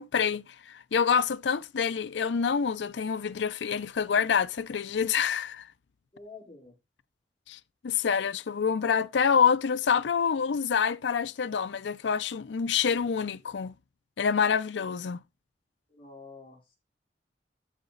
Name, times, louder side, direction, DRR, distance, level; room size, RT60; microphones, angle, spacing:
voice 1, 0.0-5.7 7.5-13.7 14.2-15.2, left 6 dB, 80° left, 0.5 m, -27 dB
voice 2, 6.1-6.8 15.9-16.8, left 3 dB, 30° left, 3.4 m, -48 dB
12.5 x 5.0 x 3.8 m
head